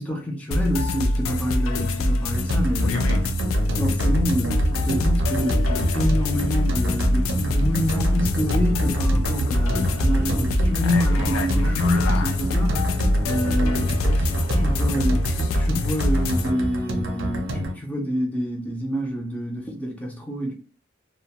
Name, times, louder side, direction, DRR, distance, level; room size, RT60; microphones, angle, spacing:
voice 1, 0.0-3.0 3.8-20.5, equal, 5° left, 0.4 m, -27 dB
sound 1, 0.5-16.5, left 1 dB, 80° left, 0.4 m, -23 dB
sound 2, 2.3-17.7, right 1 dB, 70° right, 0.6 m, -28 dB
2.4 x 2.1 x 2.8 m
head